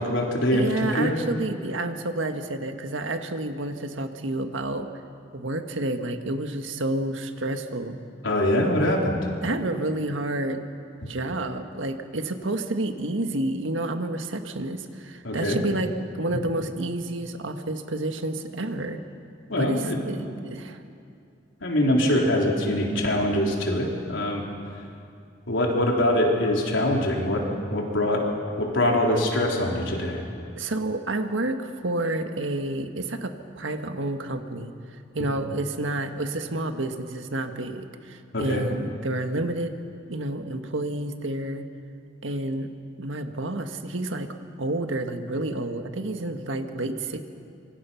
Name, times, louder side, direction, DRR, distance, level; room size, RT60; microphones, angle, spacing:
voice 1, 0.0-1.2 8.2-9.2 15.2-15.6 19.5-20.3 21.6-24.4 25.5-27.5 27.7-28.3 28.6-30.2 38.3-38.7, left 1 dB, 85° left, -1 dB, 3.8 m, -23 dB
voice 2, 0.5-4.9 5.3-8.0 9.4-10.6 11.1-19.0 19.6-20.8 30.6-34.7 35.1-39.7 40.1-41.7 42.2-42.7 43.0-44.3 44.6-47.2, right 2 dB, 80° right, 6 dB, 1.6 m, -29 dB
26.0 x 24.0 x 5.8 m, 2.5 s
head